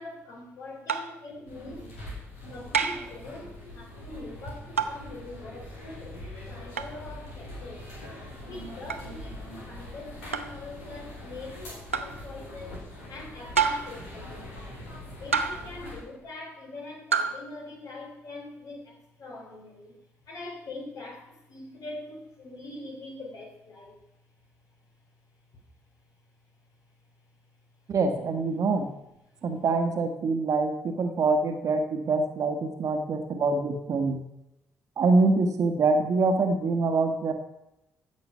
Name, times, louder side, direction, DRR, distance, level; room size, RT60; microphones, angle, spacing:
voice 1, 0.0-2.0 2.5-7.9 8.4-12.8 13.1-14.8 15.2-20.0 20.2-24.1 24.4-24.8 25.5-25.6 26.8-27.5 27.8-27.9 29.3-29.4, left 2 dB, 55° left, 1 dB, 3.4 m, -43 dB
sound 1, 0.9-1.2 2.7-3.1 4.8-5.0 6.8-6.9 8.9-9.1 10.3-10.6 11.9-12.2 13.5-14.0 15.3-15.8 17.1-17.4, right 6 dB, 90° right, 0.4 m, -28 dB
sound 2, 1.5-16.0, left 1 dB, 80° left, 2.9 m, -42 dB
voice 2, 27.9-28.9 29.4-34.2 35.0-37.3, right 3 dB, 50° right, 5 dB, 1.5 m, -25 dB
15.0 x 6.8 x 5.5 m, 0.89 s
figure-of-eight pair, 40°, 7 cm